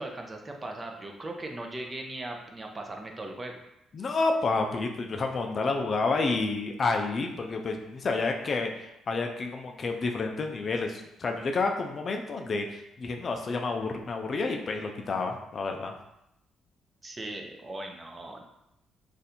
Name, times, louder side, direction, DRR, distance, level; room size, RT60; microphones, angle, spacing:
voice 1, 0.0-3.6 17.0-18.4, right 2 dB, 25° right, 3 dB, 0.5 m, -38 dB
voice 2, 3.9-15.9, left 3 dB, 45° left, 3 dB, 0.4 m, -29 dB
2.6 x 2.5 x 4.2 m, 0.83 s
cardioid pair, 90°, 0 cm